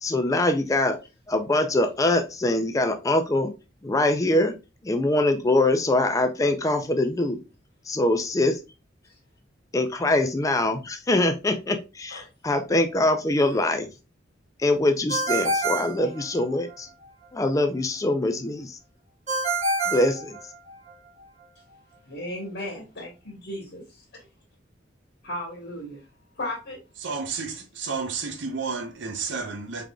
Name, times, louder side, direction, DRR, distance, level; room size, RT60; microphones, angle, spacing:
voice 1, 0.0-1.0 1.3-3.5 3.8-4.5 4.8-7.4 7.9-8.6 9.7-13.9 14.6-16.9 17.3-18.8 19.9-20.4, left 2 dB, 15° left, 0.4 m, -23 dB
Ringtone, 15.1-16.8 19.3-20.9, right 2 dB, 40° right, 1.0 m, -27 dB
voice 2, 22.1-23.8 25.2-26.0 26.4-26.8, left 1 dB, 65° left, 1.2 m, -35 dB
voice 3, 27.0-29.8, right 5 dB, 70° right, 0.7 m, -31 dB
3.7 x 3.3 x 2.3 m
head